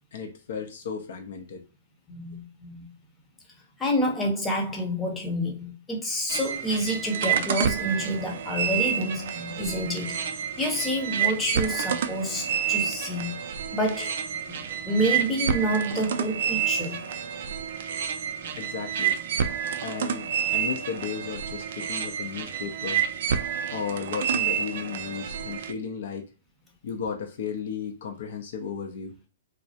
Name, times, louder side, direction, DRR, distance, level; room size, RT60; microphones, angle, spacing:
voice 1, 0.1-1.6 18.6-19.2 19.8-23.1 23.7-26.3 26.8-29.2, left 6 dB, 65° left, 0.5 m, -34 dB
voice 2, 2.1-2.9 3.8-10.2 10.6-13.4 13.7-14.1 14.5-14.6 14.8-17.0, equal, 10° left, 0.7 m, -28 dB
sound 1, 6.3-25.7, right 8 dB, 60° right, 0.3 m, -29 dB
2.3 x 2.0 x 2.7 m
hypercardioid pair, 125°, 0 cm